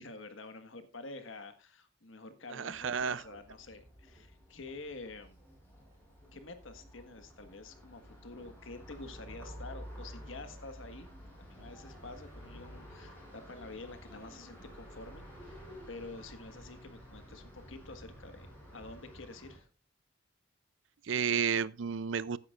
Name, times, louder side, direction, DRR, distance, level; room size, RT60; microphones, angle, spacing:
voice 1, 0.0-5.4 6.3-11.1 11.4-18.5 18.7-19.7, left 3 dB, 80° left, 1.6 m, -48 dB
voice 2, 2.5-3.2 21.0-22.4, right 7 dB, 70° right, 0.5 m, -32 dB
sound 1, 2.7-19.6, equal, 10° left, 6.8 m, -51 dB
15.5 x 9.8 x 2.5 m
head